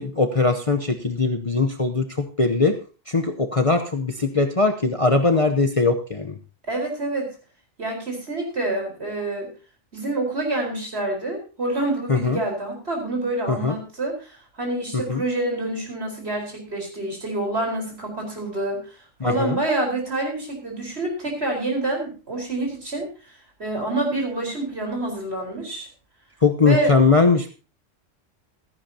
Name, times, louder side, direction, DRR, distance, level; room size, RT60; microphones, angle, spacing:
voice 1, 0.0-2.7 3.1-6.3 12.1-12.4 13.5-13.8 15.1-15.2 19.2-19.6 26.4-27.5, left 3 dB, 30° left, 4 dB, 0.9 m, -20 dB
voice 2, 6.7-7.3 7.8-9.5 9.9-19.0 19.2-23.1 23.6-25.9 26.6-26.9, right 2 dB, 60° right, 1 dB, 4.8 m, -27 dB
15.0 x 14.0 x 2.9 m, 0.34 s
omnidirectional pair, 1.2 m